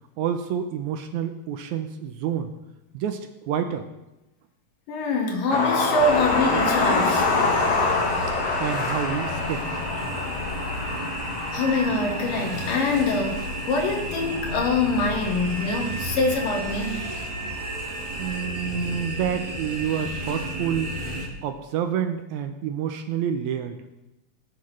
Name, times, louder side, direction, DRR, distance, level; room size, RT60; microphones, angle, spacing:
voice 1, 0.2-2.5 2.9-3.9 8.6-9.7 18.2-21.0 21.4-23.8, right 9 dB, 75° right, 8 dB, 1.9 m, -28 dB
voice 2, 4.9-7.3 11.5-17.0, left 3 dB, 90° left, 1 dB, 3.3 m, -24 dB
sound 1, 5.5-16.6 17.6-17.7 18.0-18.1, left 3 dB, 70° left, 1.0 m, -27 dB
sound 2, 6.0-21.3, right 1 dB, 30° right, 2.5 m, -32 dB
18.0 x 7.9 x 3.2 m, 0.96 s
omnidirectional pair, 3.7 m